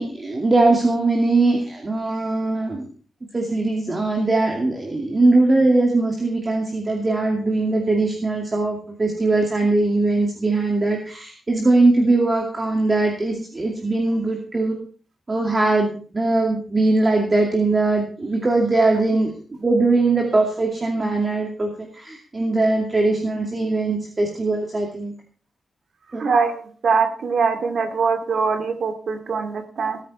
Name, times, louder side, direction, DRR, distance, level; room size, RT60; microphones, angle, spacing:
voice 1, 0.0-2.9 3.3-14.8 15.3-19.3 19.6-25.1 26.1-26.2, right 2 dB, 25° right, 1 dB, 2.5 m, -20 dB
voice 2, 26.2-30.0, right 5 dB, 60° right, 5 dB, 2.4 m, -22 dB
19.0 x 9.3 x 4.3 m, 0.41 s
wide cardioid pair, 135°, 0 cm